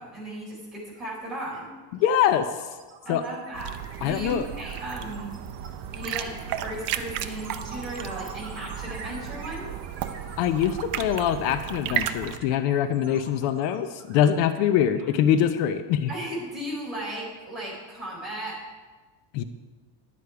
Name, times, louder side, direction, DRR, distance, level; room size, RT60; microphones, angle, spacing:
voice 1, 0.0-1.7 3.0-5.4 5.9-9.7 15.0-15.1 16.1-18.6, right 1 dB, ahead, -8 dB, 4.1 m, -36 dB
sound 1, 0.9-1.1 1.4-15.7, right 4 dB, 25° right, 1.8 m, -46 dB
voice 2, 1.9-2.7 3.1-3.2 4.0-4.5 10.4-16.1 19.3-19.4, left 9 dB, 80° left, 10 dB, 0.8 m, -23 dB
sound 2, 3.5-12.4, right 10 dB, 45° right, 0.6 m, -34 dB
11.5 x 8.4 x 4.7 m, 1.3 s
cardioid pair, 175°, 48 cm